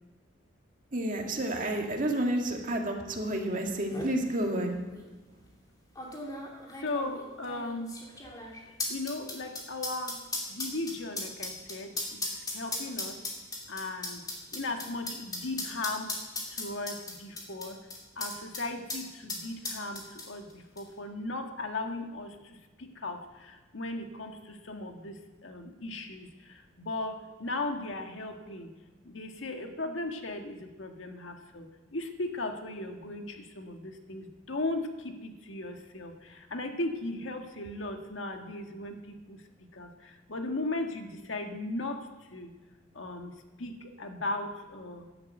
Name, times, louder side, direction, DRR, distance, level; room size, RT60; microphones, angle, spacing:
voice 1, 0.9-4.8, right 1 dB, 45° right, 2 dB, 2.2 m, -30 dB
sound 1, 3.4-3.5 3.7-4.1 4.9-5.0 6.0-18.6 18.9-19.0 19.3-20.5 20.8-20.9, left 2 dB, 20° left, 2.7 m, -37 dB
voice 2, 6.8-7.9 8.9-10.2 10.5-12.2 12.5-13.1 13.7-14.2 14.5-16.1 16.5-17.8 18.2-20.5 20.8-22.3 22.8-26.3 26.8-28.7 29.1-31.7 31.9-39.4 39.7-42.0 42.3-42.5 43.0-43.3 43.6-45.0, left 2 dB, 80° left, 4 dB, 1.6 m, -37 dB
12.5 x 11.0 x 7.8 m, 1.2 s
head